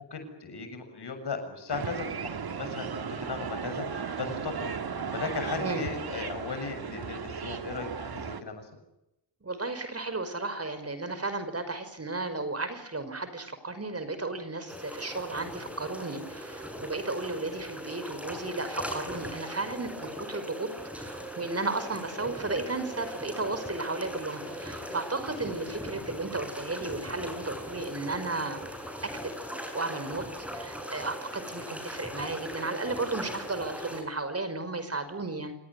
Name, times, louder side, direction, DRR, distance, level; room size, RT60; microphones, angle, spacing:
voice 1, 0.1-4.8 5.1-8.7, left 4 dB, 65° left, 7 dB, 6.9 m, -37 dB
sound 1, 1.7-8.4, right 6 dB, 60° right, 2.2 m, -36 dB
voice 2, 5.6-5.9 9.4-20.7 21.0-28.6 29.0-29.3 29.7-30.2 30.5-35.6, right 3 dB, 35° right, 10 dB, 5.4 m, -34 dB
sound 2, 14.7-34.0, equal, 5° right, 7.3 m, -39 dB
28.0 x 18.5 x 9.7 m, 0.89 s
cardioid pair, 70°, 42 cm